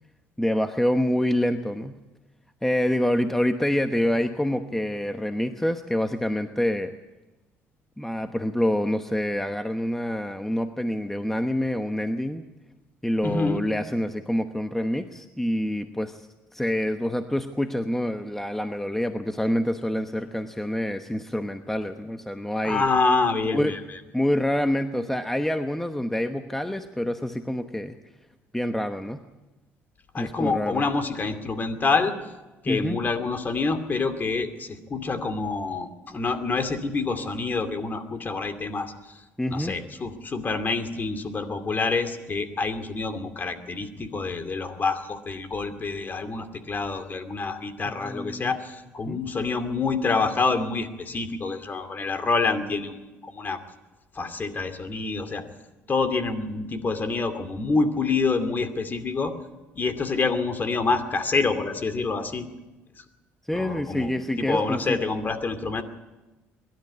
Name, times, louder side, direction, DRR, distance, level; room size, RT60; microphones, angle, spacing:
voice 1, 0.4-2.0 2.6-6.9 8.0-12.4 13.0-16.3 16.5-22.9 23.5-23.7 24.1-28.0 28.5-29.2 30.2-30.8 32.7-33.0 39.4-39.8 48.0-48.6 49.1-49.2 63.5-65.0, left 1 dB, 5° left, 8 dB, 1.0 m, -26 dB
voice 2, 13.2-13.6 22.6-24.0 30.1-32.1 32.6-39.1 39.5-53.6 54.1-55.4 55.9-59.3 59.7-62.5 63.0-63.1 63.5-65.8, left 4 dB, 35° left, 8 dB, 2.5 m, -27 dB
22.5 x 12.0 x 9.6 m, 1.1 s
supercardioid pair, 80°, 6 cm